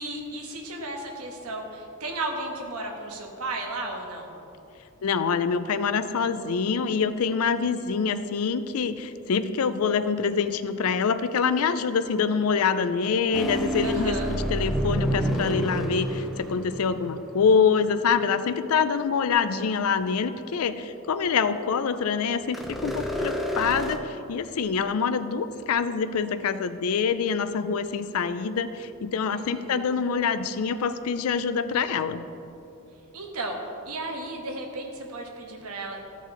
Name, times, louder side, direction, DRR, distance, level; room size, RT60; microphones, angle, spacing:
voice 1, 0.0-4.3 13.8-14.3 29.3-29.9 33.1-33.5 33.8-36.0, right 2 dB, 85° right, 1 dB, 1.3 m, -34 dB
voice 2, 5.0-32.3, left 6 dB, 75° left, 12 dB, 0.4 m, -25 dB
sound 1, 13.3-17.6 22.5-24.0, equal, ahead, 0.5 m, -29 dB
14.0 x 5.4 x 3.8 m, 2.8 s
head